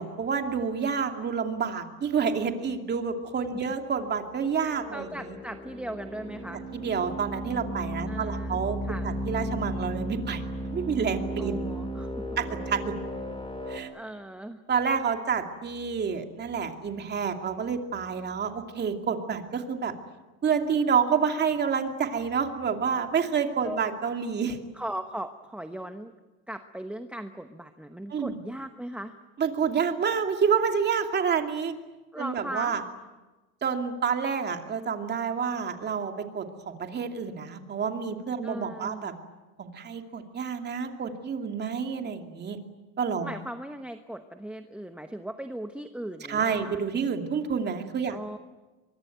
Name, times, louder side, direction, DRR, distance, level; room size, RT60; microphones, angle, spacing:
voice 1, 0.0-5.4 6.7-8.8 9.0-10.4 10.7-11.6 12.4-12.9 13.7-13.9 14.7-19.9 20.4-24.6 28.1-28.3 29.4-31.7 32.2-32.8 33.6-39.1 39.6-42.6 43.0-43.3 46.3-48.4, right 6 dB, 30° right, 5 dB, 2.7 m, -28 dB
sound 1, 3.7-13.8, right 1 dB, 15° left, 5.9 m, -35 dB
voice 2, 4.9-6.6 8.1-9.1 11.4-12.2 13.9-14.6 23.6-23.8 24.7-26.1 26.5-29.1 32.1-32.8 38.4-39.1 43.2-46.8 48.1-48.4, right 1 dB, 5° right, 7 dB, 1.0 m, -38 dB
24.0 x 23.0 x 9.3 m, 1.2 s
cardioid pair, 135°, 33 cm